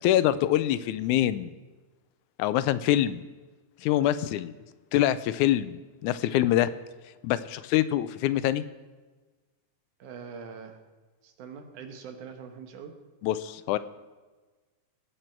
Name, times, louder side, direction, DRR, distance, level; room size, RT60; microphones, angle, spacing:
voice 1, 0.0-1.5 2.4-3.2 3.8-4.5 4.9-6.7 7.2-8.6 13.2-13.8, left 13 dB, 85° left, 14 dB, 2.0 m, -25 dB
voice 2, 10.0-10.8 11.2-12.9, right 6 dB, 85° right, 6 dB, 2.7 m, -43 dB
19.5 x 8.2 x 4.5 m, 1.3 s
omnidirectional pair, 3.4 m